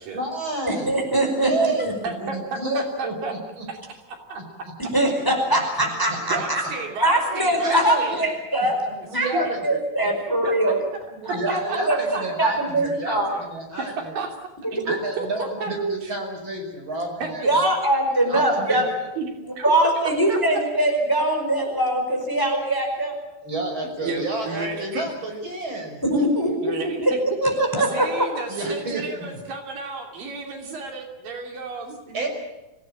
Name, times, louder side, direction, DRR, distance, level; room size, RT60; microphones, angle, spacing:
voice 1, 0.1-0.9 1.4-1.9 2.5-3.7 4.4-4.5 7.6-8.0 8.9-9.6 11.1-14.2 14.8-17.6 18.3-18.8 23.4-26.2 28.5-29.3 32.1-32.3, right 2 dB, 35° right, 2 dB, 6.4 m, -29 dB
voice 2, 0.7-1.5 1.8-1.9 4.8-6.6 7.0-8.9 9.1-10.8 11.2-11.6 11.9-12.0 12.4-13.3 14.6-15.0 17.4-18.9 19.6-23.1 26.0-26.7 27.0-27.1 27.4-28.3, right 1 dB, 5° left, 3 dB, 4.6 m, -22 dB
voice 3, 2.0-3.3 3.7-3.8 4.1-4.7 6.3-8.2 9.4-9.5 10.0-10.1 10.4-10.8 11.7-12.2 13.9-14.4 14.7-15.7 16.0-16.1 17.2-17.7 18.7-18.9 19.2-19.3 19.6-19.7 20.0-20.4 24.0-25.1 26.6-27.2 27.8-32.3, right 4 dB, 75° right, 3 dB, 4.5 m, -33 dB
25.5 x 17.0 x 8.8 m, 1.0 s
omnidirectional pair, 4.0 m